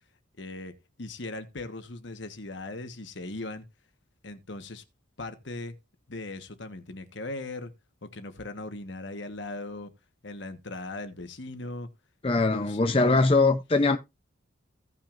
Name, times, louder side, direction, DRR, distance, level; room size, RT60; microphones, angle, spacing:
voice 1, 0.4-0.7 1.0-3.6 4.2-4.8 5.2-5.8 6.1-7.7 8.0-9.9 10.2-11.9 12.3-13.2, left 2 dB, 60° left, 1.3 m, -39 dB
voice 2, 12.2-14.0, left 3 dB, 25° left, 0.6 m, -22 dB
16.5 x 6.0 x 2.6 m
head